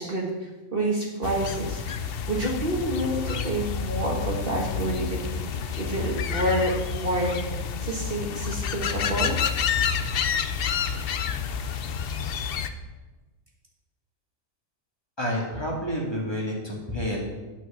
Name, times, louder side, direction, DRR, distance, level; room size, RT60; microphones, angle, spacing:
voice 1, 0.0-9.4, right 1 dB, 45° right, -1 dB, 1.5 m, -29 dB
sound 1, 1.2-12.7, left 7 dB, 60° left, 0.7 m, -29 dB
voice 2, 15.2-17.2, equal, 20° left, -3 dB, 2.0 m, -29 dB
9.4 x 5.9 x 6.8 m, 1.2 s
omnidirectional pair, 1.4 m